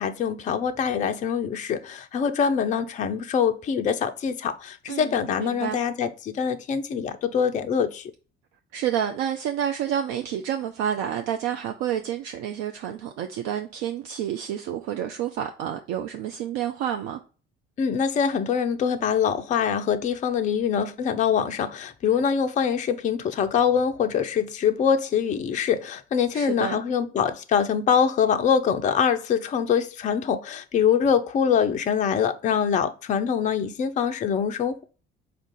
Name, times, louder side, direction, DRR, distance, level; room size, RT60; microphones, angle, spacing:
voice 1, 0.0-8.0 17.8-34.8, left 7 dB, 25° left, 0.4 m, -24 dB
voice 2, 4.9-5.8 8.7-17.2 26.3-26.8, right 10 dB, 55° right, 0.5 m, -29 dB
4.5 x 2.4 x 3.8 m
figure-of-eight pair, 50°, 31 cm